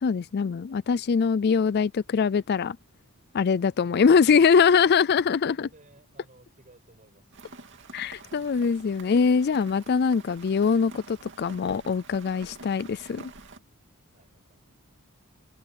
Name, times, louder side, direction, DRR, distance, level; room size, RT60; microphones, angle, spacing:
voice 1, 0.0-2.8 3.3-5.7 7.9-13.3, left 6 dB, 50° left, 0.4 m, -23 dB
voice 2, 3.8-4.5 4.7-5.0 5.4-7.4 8.2-8.5 14.1-14.7, right 2 dB, 35° right, 7.0 m, -57 dB
Rain, 7.3-13.6, right 3 dB, 55° right, 2.6 m, -47 dB
open air
head